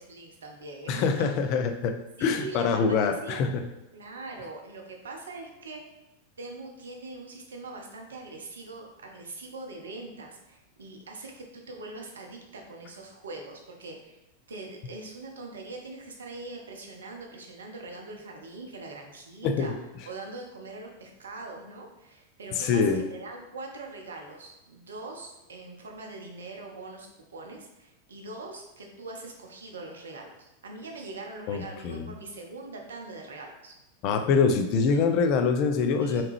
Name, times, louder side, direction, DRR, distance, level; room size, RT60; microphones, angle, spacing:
voice 1, 0.0-1.5 2.2-3.6 3.9-5.8 6.4-14.2 14.5-19.7 20.1-33.7 34.8-35.1 36.0-36.2, right 3 dB, 70° right, 2 dB, 0.6 m, -42 dB
voice 2, 0.9-3.6 19.4-19.8 22.6-23.0 31.5-32.1 34.0-36.2, left 5 dB, 40° left, 6 dB, 0.3 m, -25 dB
3.5 x 2.9 x 3.0 m, 0.95 s
figure-of-eight pair, 90°, 0 cm